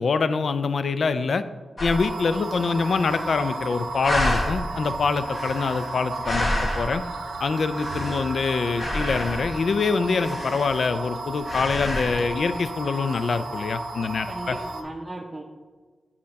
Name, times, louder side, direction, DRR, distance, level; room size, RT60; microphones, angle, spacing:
voice 1, 0.0-1.4 1.8-7.0 7.4-14.6, left 4 dB, 70° left, 12 dB, 0.3 m, -25 dB
sound 1, 1.8-2.1 2.5-2.6 2.8-3.6 4.0-4.7 5.2-7.1 7.6-8.4 8.8-9.6 10.2-11.1 11.4-12.2, left 1 dB, 45° left, 1.1 m, -29 dB
sound 2, 1.9-14.8, right 2 dB, 85° right, 0.7 m, -34 dB
voice 2, 2.3-2.8 8.0-8.3 14.2-15.4, right 1 dB, 15° right, -1 dB, 0.6 m, -38 dB
8.4 x 2.9 x 5.2 m, 1.5 s
cardioid pair, 75°, 0 cm